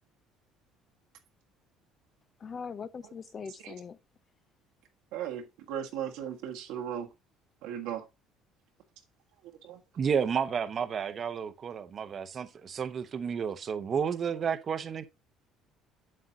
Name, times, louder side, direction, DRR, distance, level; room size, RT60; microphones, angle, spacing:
voice 1, 2.4-4.0, left 6 dB, 40° left, 0.7 m, -41 dB
voice 2, 5.1-7.1 7.6-8.0 9.4-9.8, right 9 dB, 80° right, 1.5 m, -37 dB
voice 3, 10.0-15.0, right 7 dB, 45° right, 0.9 m, -31 dB
7.8 x 7.7 x 2.7 m
supercardioid pair, 85°, 0 cm